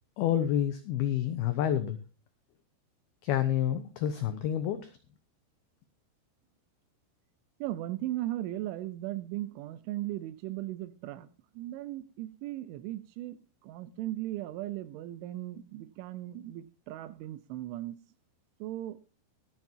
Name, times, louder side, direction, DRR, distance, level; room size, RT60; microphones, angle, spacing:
voice 1, 0.2-2.0 3.2-4.9, left 10 dB, 85° left, 9 dB, 2.2 m, -28 dB
voice 2, 7.6-11.3 11.6-13.4 13.6-18.0 18.6-19.0, right 15 dB, 80° right, 14 dB, 3.2 m, -37 dB
22.5 x 7.7 x 2.8 m, 0.33 s
omnidirectional pair, 5.6 m